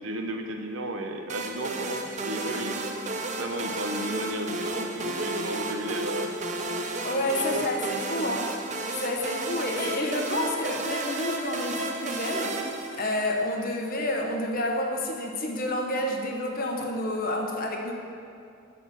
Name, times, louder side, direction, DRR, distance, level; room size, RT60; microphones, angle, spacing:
voice 1, 0.0-6.4 6.7-6.9 7.4-7.7, right 1 dB, 70° right, 4 dB, 0.9 m, -34 dB
sound 1, 1.3-13.5, right 2 dB, 35° right, 0.6 m, -32 dB
voice 2, 7.0-8.5 9.0-12.7 12.9-17.9, left 1 dB, 45° left, 1 dB, 1.0 m, -29 dB
11.0 x 4.3 x 6.8 m, 2.5 s
head